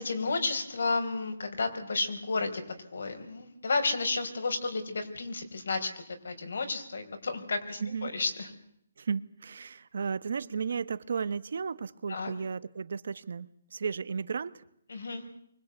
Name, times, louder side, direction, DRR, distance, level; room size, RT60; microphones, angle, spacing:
voice 1, 0.0-2.6 2.9-5.9 6.2-8.5 12.1-12.3 14.9-15.2, left 3 dB, 70° left, 7 dB, 4.7 m, -32 dB
voice 2, 7.8-8.1 9.0-14.6, right 6 dB, 60° right, 16 dB, 1.2 m, -34 dB
24.5 x 20.5 x 8.2 m, 0.72 s
hypercardioid pair, 175°, 0 cm